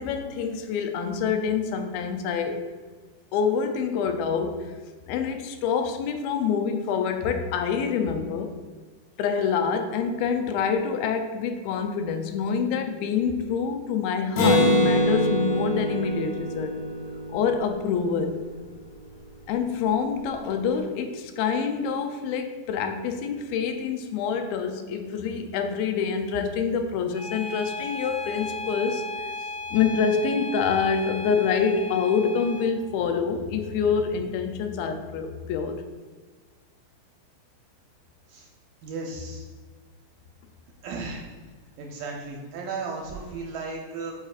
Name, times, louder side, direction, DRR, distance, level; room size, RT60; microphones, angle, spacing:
voice 1, 0.0-2.6 3.3-4.7 5.1-8.5 9.2-16.7 17.3-18.4 19.5-35.8, left 6 dB, 85° left, 5 dB, 2.4 m, -26 dB
Acoustic guitar, 14.4-18.0, equal, 60° left, 2.4 m, -24 dB
Bowed string instrument, 27.1-32.7, left 2 dB, 45° left, 1.7 m, -35 dB
voice 2, 38.8-39.4 40.8-41.3 41.8-44.2, right 4 dB, 80° right, 0 dB, 2.1 m, -35 dB
8.1 x 4.8 x 2.4 m, 1.4 s
omnidirectional pair, 4.3 m